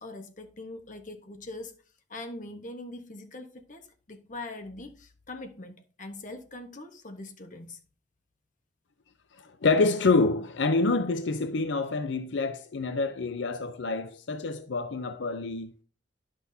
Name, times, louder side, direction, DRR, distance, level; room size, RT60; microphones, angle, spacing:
voice 1, 0.0-1.7 2.1-7.8, left 2 dB, 45° left, 1.2 m, -42 dB
voice 2, 9.4-15.7, left 3 dB, 80° left, 0.6 m, -27 dB
11.0 x 6.2 x 2.7 m
head